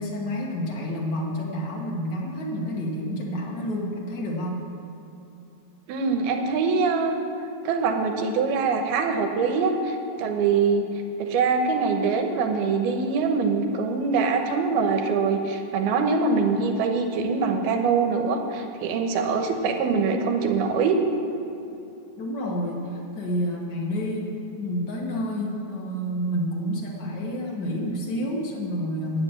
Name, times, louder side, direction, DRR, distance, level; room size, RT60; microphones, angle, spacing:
voice 1, 0.0-4.6 22.2-24.3 24.6-29.2, equal, 70° left, -3 dB, 1.0 m, -29 dB
voice 2, 5.9-7.2 7.6-10.9 11.2-21.0, right 4 dB, 80° right, 4 dB, 2.9 m, -23 dB
10.5 x 8.4 x 8.8 m, 2.8 s
omnidirectional pair, 4.5 m